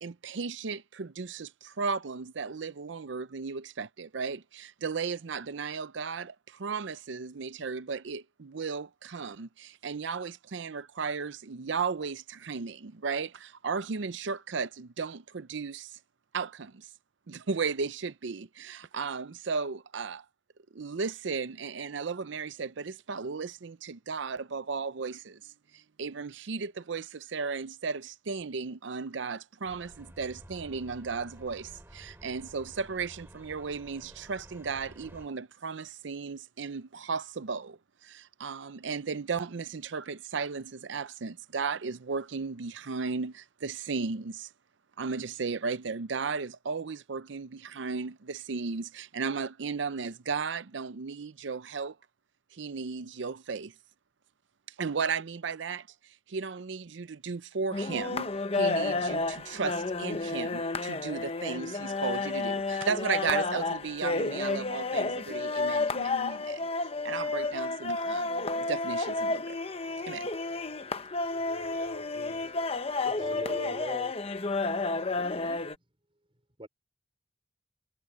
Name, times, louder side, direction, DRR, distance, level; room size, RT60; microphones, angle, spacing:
voice 1, 0.0-16.0 16.3-16.9 17.3-20.2 20.7-44.5 45.0-52.0 52.5-53.7 54.8-66.7 67.0-69.6 70.1-70.3, right 5 dB, 70° right, 0.6 m, -35 dB
sound 1, 29.6-35.3, equal, 10° right, 3.3 m, -52 dB
sound 2, 57.7-75.8, left 3 dB, 30° left, 0.9 m, -31 dB
voice 2, 71.3-72.5 73.0-73.8, left 1 dB, 60° left, 3.4 m, -43 dB
voice 3, 73.2-74.1 75.2-75.6 76.6-76.7, right 1 dB, 30° right, 5.3 m, -40 dB
head